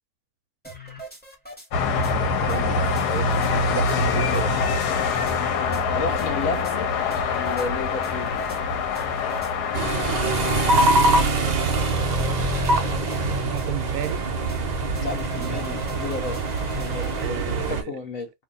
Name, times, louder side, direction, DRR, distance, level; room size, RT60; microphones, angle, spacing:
sound 1, 0.6-1.7 2.0-2.1 2.5-3.5 3.9-4.0 4.3-5.4 5.7-5.8 6.2-6.7 7.1-7.7 8.0-8.6 8.9-9.5 9.9-10.4 10.8-11.4 11.7-11.9 12.2-12.3 12.6-12.8 13.1-13.2 13.6-13.7 14.0-14.2 14.5-14.6 14.9-17.3, right 1 dB, 5° left, 1.2 m, -39 dB
sound 2, 1.7-10.9, left 4 dB, 80° left, 1.3 m, -24 dB
voice 1, 2.4-4.6 12.5-13.0 13.4-14.3 15.4-15.7 17.2-17.9, right 11 dB, 75° right, 1.0 m, -34 dB
voice 2, 5.9-7.0 7.4-8.3 15.0-17.4 17.7-18.3, left 4 dB, 65° left, 1.1 m, -32 dB
sound 3, 9.7-17.8, right 2 dB, 55° right, 0.4 m, -23 dB
2.7 x 2.6 x 3.8 m
omnidirectional pair, 1.7 m